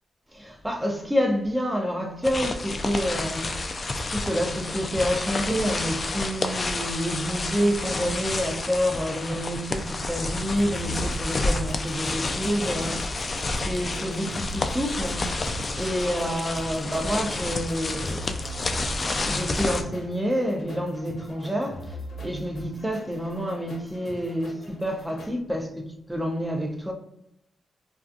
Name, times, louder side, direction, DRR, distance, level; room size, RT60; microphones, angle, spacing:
voice 1, 0.3-3.6 4.0-13.1 13.7-15.3 15.8-18.2 19.1-26.9, equal, 10° right, 0.6 m, -28 dB
sound 1, 2.2-19.8, left 2 dB, 45° left, 0.3 m, -30 dB
sound 2, 10.6-25.3, equal, 70° left, 0.7 m, -42 dB
2.4 x 2.3 x 2.5 m
cardioid pair, 60°, 0 cm